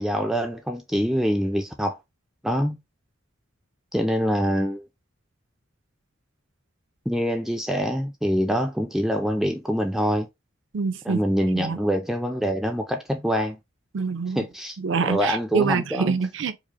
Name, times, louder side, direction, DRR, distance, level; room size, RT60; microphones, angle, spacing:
voice 1, 0.0-2.0 2.4-2.8 3.9-4.9 7.1-10.3 11.1-13.6 14.4-14.8 15.0-16.2, equal, ahead, 0.3 m, -25 dB
voice 2, 10.7-11.2 11.5-11.8 13.9-14.5 14.8-16.6, right 5 dB, 65° right, 0.4 m, -25 dB
4.8 x 2.0 x 2.8 m
head